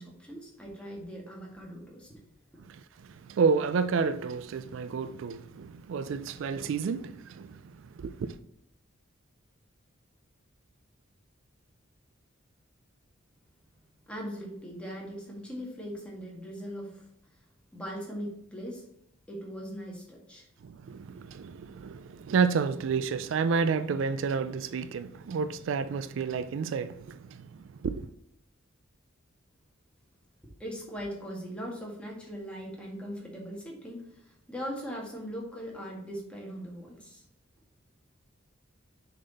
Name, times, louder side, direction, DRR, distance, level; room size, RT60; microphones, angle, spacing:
voice 1, 0.0-2.2 14.1-17.1 17.7-18.8 19.3-20.5 30.6-37.2, equal, 5° left, 1.5 m, -40 dB
voice 2, 3.2-7.7 8.0-8.3 20.6-27.4 27.8-28.1, right 5 dB, 70° right, 0.3 m, -30 dB
6.3 x 4.0 x 4.0 m
head